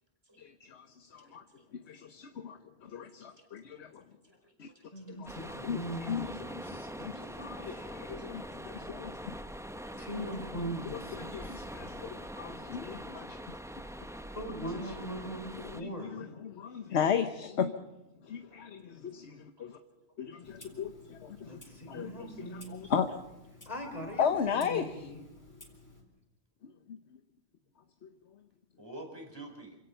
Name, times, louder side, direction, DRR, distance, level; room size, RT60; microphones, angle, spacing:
voice 1, 0.4-1.4 1.9-4.0 4.6-4.7 5.1-6.6 7.0-9.2 10.1-10.3 11.1-13.4 14.8-14.9 15.5-17.8 18.2-19.8 20.2-21.6 21.9-23.2 24.2-24.9 28.0-28.1, left 7 dB, 65° left, 8 dB, 1.2 m, -36 dB
voice 2, 1.2-1.6 3.4-3.5 4.2-5.0 7.1-7.4 7.8-8.4 9.8-9.9 18.5-18.6 19.8-20.2 20.7-20.8 28.8-29.8, right 1 dB, 20° right, 2 dB, 5.1 m, -51 dB
voice 3, 4.9-6.3 6.6-8.0 10.0-11.7 14.3-16.3 21.4-22.9 23.7-25.2, right 1 dB, 30° left, 2 dB, 3.7 m, -41 dB
sound 1, 5.3-15.8, equal, 5° right, 0.6 m, -43 dB
Clock, 20.4-26.0, left 2 dB, 15° left, 4.0 m, -55 dB
27.0 x 17.0 x 5.6 m, 0.97 s
omnidirectional pair, 1.2 m